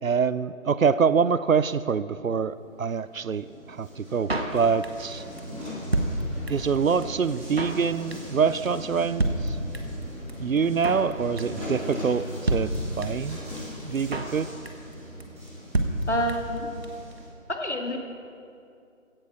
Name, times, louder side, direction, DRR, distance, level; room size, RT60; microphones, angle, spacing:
voice 1, 0.0-5.2 6.5-9.6 10.4-12.7 13.0-13.4 13.8-14.5, right 6 dB, 80° right, 16 dB, 0.6 m, -25 dB
sound 1, 2.5-17.2, left 1 dB, 10° right, 2.8 m, -39 dB
Drum kit, 4.3-5.1 5.4-5.5 5.7-6.8 7.0-7.1 7.3-7.8 8.1-8.4 8.7-8.8 8.9-9.0 9.2-10.0 10.3-10.4 10.6-11.1 11.4-11.7 11.9-12.0 12.2-12.3 12.5-13.3 13.6-13.7 13.8-14.4 14.7-14.9 15.2-15.3 15.5-15.6 15.7-16.6 16.8-16.9 17.1-17.2, right 2 dB, 50° right, 1.4 m, -28 dB
voice 2, 16.1-16.7 17.5-18.0, equal, 55° left, 3 dB, 2.0 m, -27 dB
16.5 x 12.5 x 4.8 m, 2.5 s
figure-of-eight pair, 165°, 41 cm